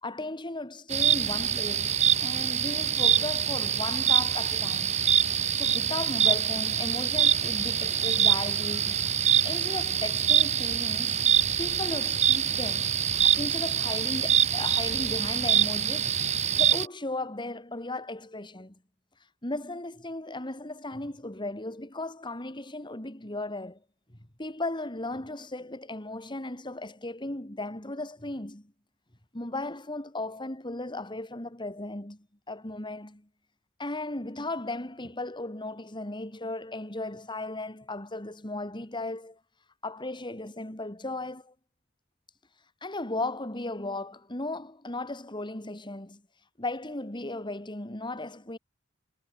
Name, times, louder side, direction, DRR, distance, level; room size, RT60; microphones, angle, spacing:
voice 1, 0.0-4.9 5.5-9.0 9.4-18.7 19.4-23.8 24.1-28.7 29.3-33.3 33.8-39.4 39.8-41.5 42.8-46.2 46.6-48.6, left 2 dB, 25° left, 2.8 m, -36 dB
sound 1, 0.9-16.9, right 8 dB, 35° right, 1.1 m, -25 dB
head